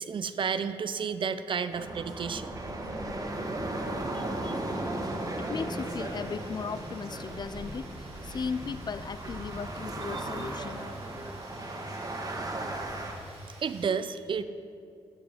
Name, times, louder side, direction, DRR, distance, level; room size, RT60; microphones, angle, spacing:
voice 1, 0.0-2.5 4.1-4.6 13.6-14.4, right 6 dB, 55° right, 12 dB, 0.5 m, -32 dB
sound 1, 1.5-13.9, right 2 dB, 75° right, 1.8 m, -54 dB
sound 2, 1.7-13.1, right 1 dB, 35° right, 1.5 m, -36 dB
sound 3, 4.7-9.4 9.6-11.2, equal, 75° left, 2.2 m, -52 dB
voice 2, 5.4-10.9, left 5 dB, 45° left, 14 dB, 0.4 m, -37 dB
12.5 x 4.9 x 5.0 m, 2.4 s
supercardioid pair, 50°, 10 cm